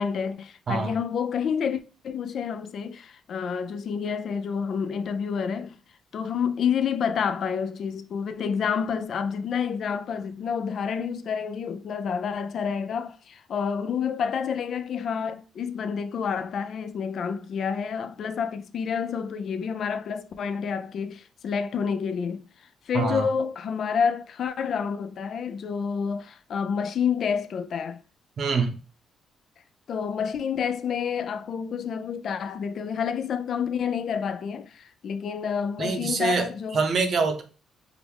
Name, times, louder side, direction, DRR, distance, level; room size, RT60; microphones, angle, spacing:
voice 1, 0.0-5.8 6.1-28.0 29.9-36.8, left 6 dB, 60° left, 0.3 m, -29 dB
voice 2, 22.9-23.3 28.4-28.8 35.8-37.4, right 4 dB, 55° right, 0.7 m, -25 dB
4.7 x 2.0 x 3.4 m
cardioid pair, 90°, 0 cm